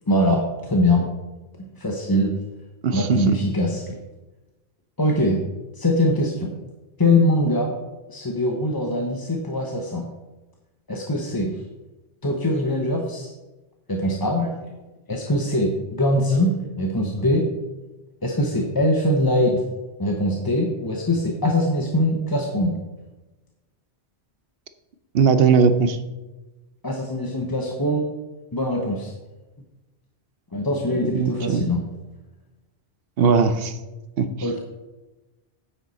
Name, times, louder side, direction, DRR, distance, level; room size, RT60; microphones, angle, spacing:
voice 1, 0.1-1.0 1.8-2.3 2.9-4.0 5.0-5.4 5.7-6.6 7.0-7.8 8.1-10.1 10.9-11.6 12.2-13.3 13.9-14.8 15.1-17.4 18.2-19.6 20.0-22.8 26.8-28.1 28.5-29.1 30.5-31.8 34.4-34.6, left 1 dB, 20° left, 1 dB, 0.8 m, -22 dB
voice 2, 2.8-3.4 25.1-26.0 31.1-31.7 33.2-33.8 34.2-34.3, right 5 dB, 65° right, 10 dB, 0.9 m, -19 dB
9.7 x 7.9 x 4.1 m, 1.1 s
omnidirectional pair, 1.1 m